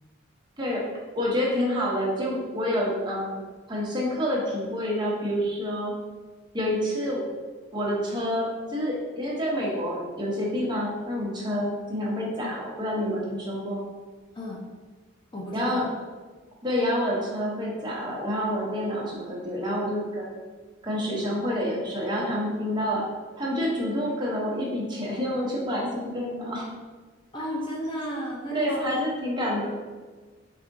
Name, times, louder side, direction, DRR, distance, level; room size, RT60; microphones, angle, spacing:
voice 1, 1.2-3.4 3.7-5.9 6.5-7.2 7.7-13.8 15.5-15.8 16.6-20.4 20.8-23.0 23.4-26.7 28.5-29.7, equal, 20° right, -4 dB, 0.8 m, -28 dB
voice 2, 15.3-15.9 27.3-29.0, equal, 20° left, -3 dB, 0.4 m, -33 dB
4.1 x 3.5 x 2.6 m, 1.4 s
head